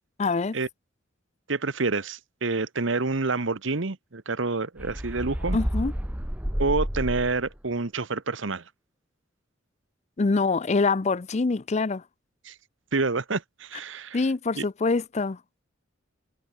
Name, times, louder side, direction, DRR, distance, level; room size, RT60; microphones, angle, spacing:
voice 1, 0.2-0.6 5.5-5.9 10.2-12.0 14.1-15.4, left 3 dB, 35° left, 0.5 m, -25 dB
voice 2, 1.5-5.6 6.6-8.6 12.4-12.5 12.9-14.2 14.6-14.7, right 3 dB, 65° right, 1.2 m, -28 dB
sound 1, 4.8-7.6, equal, 10° right, 1.1 m, -30 dB
head